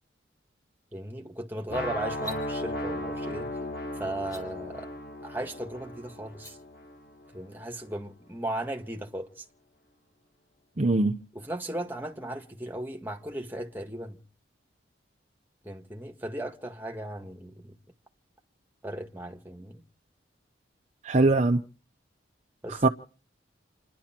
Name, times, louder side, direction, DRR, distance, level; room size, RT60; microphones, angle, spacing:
voice 1, 0.9-3.5 4.0-4.9 5.2-6.6 7.3-9.4 11.3-14.2 15.6-17.7 18.8-19.8 22.6-22.9, right 1 dB, 10° right, 1.7 m, -36 dB
sound 1, 1.7-7.6, left 1 dB, 55° left, 1.5 m, -36 dB
sound 2, 2.2-2.4 4.2-4.4 6.3-6.5, right 1 dB, 20° left, 3.9 m, -41 dB
voice 2, 10.8-11.2 21.0-21.6 22.7-22.9, right 2 dB, 40° right, 0.7 m, -22 dB
29.0 x 11.0 x 4.4 m
head